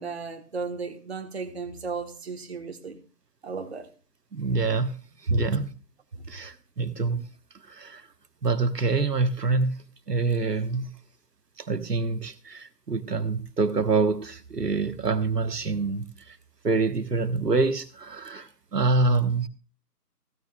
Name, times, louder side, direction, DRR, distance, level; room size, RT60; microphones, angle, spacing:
voice 1, 0.0-3.0 3.4-3.9 5.3-5.4 6.1-6.2, right 3 dB, 40° right, 1.3 m, -33 dB
voice 2, 4.3-4.9 5.3-5.7 6.3-7.2 7.7-8.0 8.4-10.9 11.6-16.4 16.6-19.5, right 3 dB, 75° right, 1.4 m, -26 dB
15.5 x 13.0 x 2.4 m
figure-of-eight pair, 160°, 49 cm